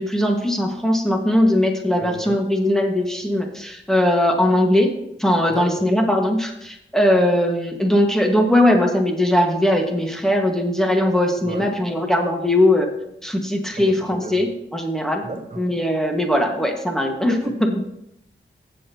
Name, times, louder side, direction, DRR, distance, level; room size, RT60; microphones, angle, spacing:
voice 1, 0.0-4.9 5.2-12.9 13.2-15.2 15.6-17.3 17.7-17.8, left 1 dB, ahead, 2 dB, 2.0 m, -20 dB
voice 2, 2.0-2.3 5.5-5.8 11.4-11.6 13.8-14.4 15.2-15.6 17.3-17.5, right 2 dB, 35° right, 0 dB, 4.6 m, -34 dB
15.5 x 7.7 x 3.1 m, 0.80 s
wide cardioid pair, 70°, 21 cm